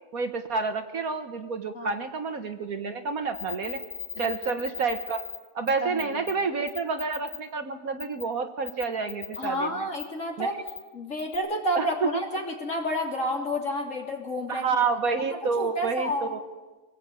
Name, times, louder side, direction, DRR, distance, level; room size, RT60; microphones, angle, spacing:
voice 1, 0.1-3.8 4.2-5.2 5.6-9.9 10.4-10.5 11.8-11.9 14.5-16.4, right 4 dB, 60° right, 7 dB, 1.7 m, -29 dB
sound 1, 3.3-5.4 5.7-5.8 6.0-6.3 6.7-7.4 8.0-8.2 8.7-9.5 10.0-10.1 10.7-10.8 11.2-11.4, left 8 dB, 75° left, 4.8 m, -37 dB
voice 2, 5.8-6.3 9.4-10.6 10.9-14.8 15.3-16.4, equal, 50° left, 1 dB, 3.6 m, -30 dB
24.0 x 18.5 x 8.9 m, 1.2 s
omnidirectional pair, 1.7 m